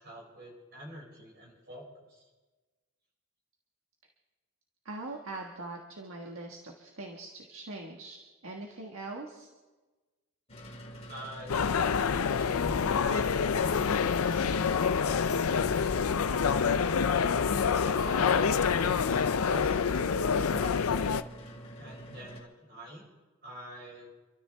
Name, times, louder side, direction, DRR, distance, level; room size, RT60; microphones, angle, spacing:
voice 1, 0.0-2.2 11.1-16.3 17.8-21.1 21.8-23.0 23.4-24.1, right 1 dB, 50° right, -2 dB, 5.7 m, -46 dB
voice 2, 4.9-8.2 8.4-9.5, right 2 dB, 65° right, 1 dB, 1.5 m, -42 dB
sound 1, 10.5-22.4, equal, 30° left, 2.0 m, -46 dB
sound 2, 11.5-21.2, left 6 dB, 85° left, 0.5 m, -27 dB
27.5 x 13.0 x 3.4 m, 1.2 s
head